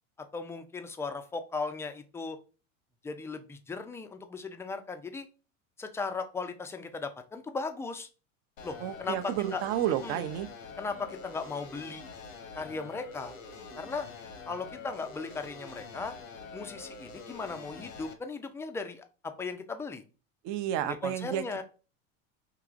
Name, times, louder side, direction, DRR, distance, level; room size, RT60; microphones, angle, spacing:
voice 1, 0.3-2.4 3.0-5.3 5.8-8.1 8.6-9.6 10.0-10.2 10.8-12.0 12.6-13.3 13.8-14.1 14.5-16.1 16.5-20.0 20.8-21.6, left 4 dB, 5° left, 7 dB, 0.3 m, -37 dB
sound 1, 8.6-18.1, left 4 dB, 85° left, 0.9 m, -46 dB
voice 2, 8.8-10.5 20.4-21.4, right 11 dB, 45° right, 10 dB, 0.6 m, -31 dB
4.7 x 2.9 x 2.5 m, 0.34 s
hypercardioid pair, 90°, 39 cm